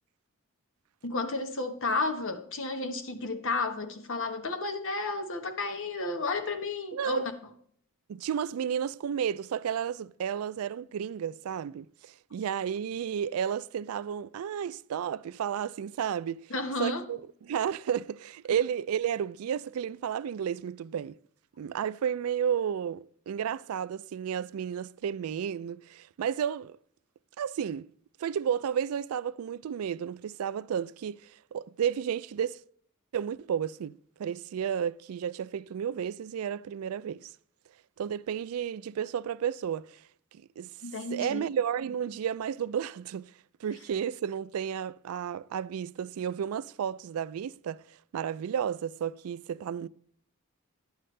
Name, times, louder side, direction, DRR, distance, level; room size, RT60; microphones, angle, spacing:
voice 1, 1.0-7.2 16.5-17.0 40.8-41.4, left 3 dB, 65° left, 1.2 m, -32 dB
voice 2, 6.9-7.2 8.1-16.5 16.8-21.2 21.6-26.8 27.4-27.9 28.2-31.2 31.5-32.6 33.1-37.3 38.0-40.0 40.6-40.7 41.1-43.3 43.6-47.8 48.1-49.9, right 8 dB, 80° right, 0.3 m, -32 dB
11.0 x 9.3 x 3.2 m
head